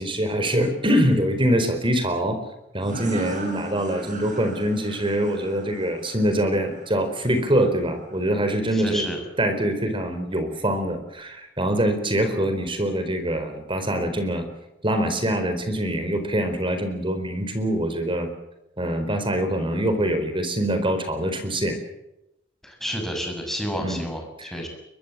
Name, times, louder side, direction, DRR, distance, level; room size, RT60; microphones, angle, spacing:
voice 1, 0.0-2.4 2.7-9.1 9.4-14.4 14.8-18.3 18.8-21.8 23.7-24.1 24.4-24.5, right 1 dB, 30° right, 8 dB, 4.4 m, -24 dB
sound 1, 2.8-8.2, right 2 dB, 45° right, 7.6 m, -38 dB
voice 2, 8.7-9.2 22.6-24.7, equal, ahead, 3 dB, 6.5 m, -30 dB
22.5 x 22.5 x 7.5 m, 0.89 s
head